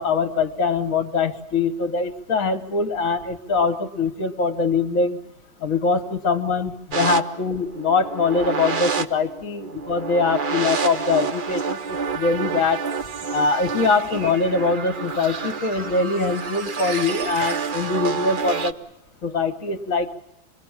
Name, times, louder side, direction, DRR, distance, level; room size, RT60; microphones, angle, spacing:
voice 1, 0.0-5.2 5.6-12.8 13.3-18.8 19.2-20.1, left 4 dB, 50° left, 8 dB, 1.5 m, -23 dB
sound 1, 6.9-18.7, right 5 dB, 40° right, 0.7 m, -28 dB
26.0 x 21.5 x 7.3 m, 0.90 s
omnidirectional pair, 2.1 m